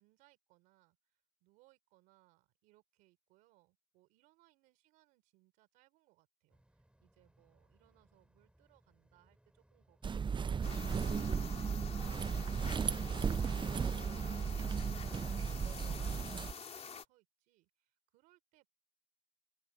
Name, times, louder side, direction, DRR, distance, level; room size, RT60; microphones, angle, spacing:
voice 1, 0.0-18.7, right 19 dB, 90° right, 4.1 m, -71 dB
sound 1, 6.5-14.3, right 1 dB, 10° right, 7.0 m, -70 dB
sound 2, 10.0-16.5, right 6 dB, 35° right, 0.6 m, -35 dB
sound 3, 10.6-17.0, left 6 dB, 50° left, 3.2 m, -48 dB
open air
supercardioid pair, 50°, 13 cm